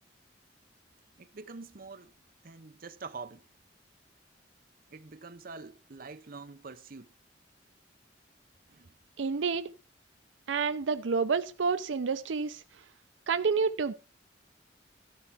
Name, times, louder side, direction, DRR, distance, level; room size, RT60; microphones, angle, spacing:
voice 1, 1.2-2.1 2.4-3.4 4.9-7.1 8.7-8.9, right 4 dB, 50° right, 0.8 m, -45 dB
voice 2, 9.2-9.7 10.5-12.6 13.3-13.9, right 5 dB, 80° right, 0.5 m, -29 dB
13.0 x 4.5 x 7.2 m
head